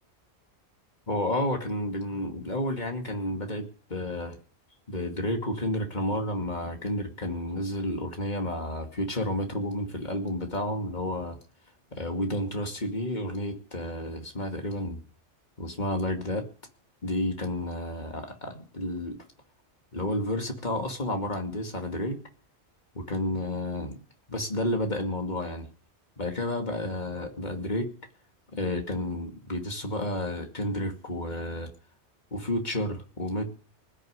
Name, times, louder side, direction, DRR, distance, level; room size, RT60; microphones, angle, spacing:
voice 1, 1.1-4.4 4.9-11.4 11.9-15.0 15.6-16.4 17.0-19.2 19.9-22.2 22.9-24.0 24.3-25.7 26.2-27.9 28.5-31.7 32.3-33.5, left 1 dB, 40° left, 3 dB, 2.6 m, -31 dB
19.5 x 6.9 x 9.6 m, 0.43 s
omnidirectional pair, 1.2 m